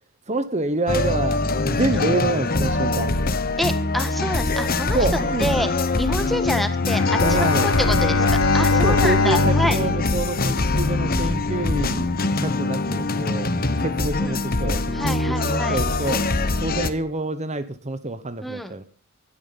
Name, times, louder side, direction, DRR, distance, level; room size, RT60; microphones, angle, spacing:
voice 1, 0.3-3.1 4.9-5.5 6.2-6.4 7.2-8.1 8.8-12.1 12.4-13.5 13.8-16.3 16.6-18.8, right 2 dB, 30° right, 11 dB, 1.2 m, -27 dB
sound 1, 0.9-16.9, left 3 dB, 40° left, 1.3 m, -23 dB
voice 2, 3.6-5.0 5.4-9.8 14.2-14.4 14.9-15.8 18.4-18.7, equal, ahead, 9 dB, 1.6 m, -27 dB
Bowed string instrument, 6.8-11.2, left 3 dB, 60° left, 1.5 m, -22 dB
17.5 x 13.0 x 5.6 m, 0.40 s
head